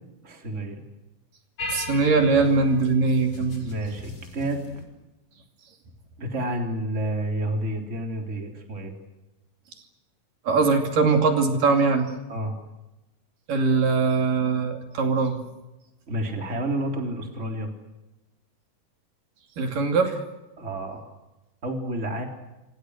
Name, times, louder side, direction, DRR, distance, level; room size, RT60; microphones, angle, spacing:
voice 1, 0.2-0.8 3.6-4.7 6.2-8.9 12.3-12.6 16.1-17.7 20.6-21.0 21.6-22.3, right 1 dB, 20° right, 3 dB, 3.7 m, -30 dB
sound 1, 1.6-4.8, left 2 dB, 45° left, 5.4 m, -38 dB
voice 2, 1.7-3.7 10.4-12.1 13.5-15.4 19.6-20.2, right 4 dB, 70° right, 4 dB, 4.3 m, -21 dB
27.5 x 27.0 x 6.5 m, 1.0 s
omnidirectional pair, 4.0 m